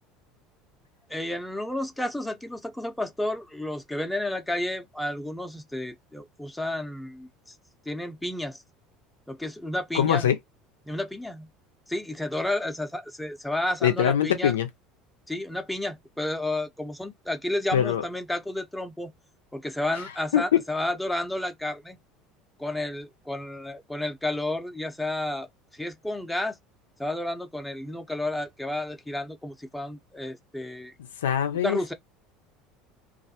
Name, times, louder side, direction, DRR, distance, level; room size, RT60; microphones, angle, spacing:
voice 1, 1.1-7.5 7.9-8.6 9.3-10.3 10.9-11.5 11.9-14.5 15.3-19.1 19.5-22.0 22.6-26.6 27.0-30.9 31.6-31.9, left 1 dB, 5° left, 0.6 m, -31 dB
voice 2, 9.9-10.4 13.8-14.7 17.7-18.0 20.3-20.6 31.2-31.9, left 10 dB, 85° left, 0.4 m, -23 dB
2.4 x 2.1 x 2.7 m
hypercardioid pair, 75°, 0 cm